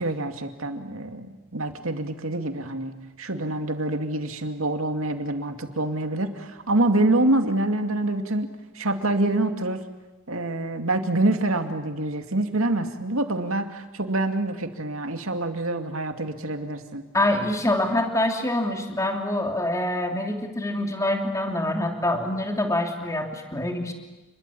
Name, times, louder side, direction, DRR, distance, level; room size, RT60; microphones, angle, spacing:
voice 1, 0.0-8.5 8.7-9.8 10.3-17.0, right 2 dB, 85° right, 6 dB, 2.5 m, -26 dB
voice 2, 17.1-23.9, left 1 dB, 15° left, 3 dB, 3.0 m, -25 dB
29.5 x 22.0 x 8.6 m, 1.1 s
head